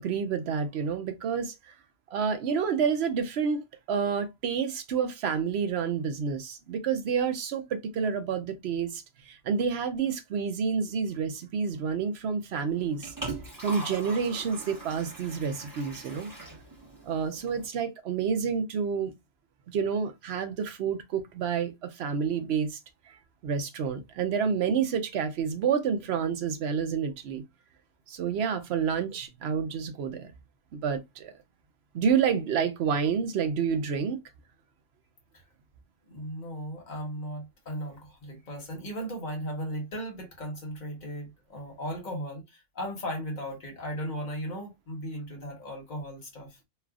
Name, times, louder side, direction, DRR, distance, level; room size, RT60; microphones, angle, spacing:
voice 1, 0.0-1.7 2.1-3.6 3.9-13.1 13.6-16.3 17.1-19.1 19.7-22.8 23.4-27.4 28.1-30.3 30.7-31.3 31.9-34.2, right 6 dB, 70° right, 0.8 m, -29 dB
Liquid, 12.7-17.7, right 2 dB, 15° right, 1.1 m, -41 dB
voice 2, 36.1-46.6, equal, 40° left, 1.2 m, -36 dB
3.3 x 2.3 x 2.3 m
omnidirectional pair, 1.2 m